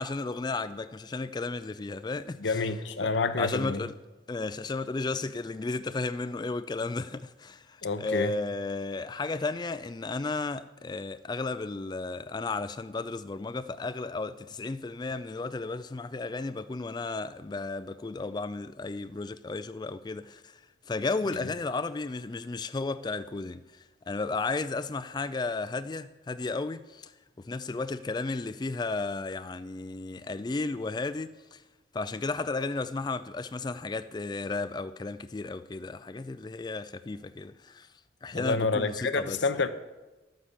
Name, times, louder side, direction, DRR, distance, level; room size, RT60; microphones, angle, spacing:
voice 1, 0.0-2.7 3.0-3.9 4.3-20.6 20.9-27.1 27.4-31.6 31.9-37.9 38.2-39.4, left 3 dB, 25° left, 0.3 m, -34 dB
voice 2, 2.4-3.8 7.8-8.3 38.3-39.7, left 4 dB, 75° left, 0.8 m, -28 dB
13.0 x 9.2 x 7.2 m
head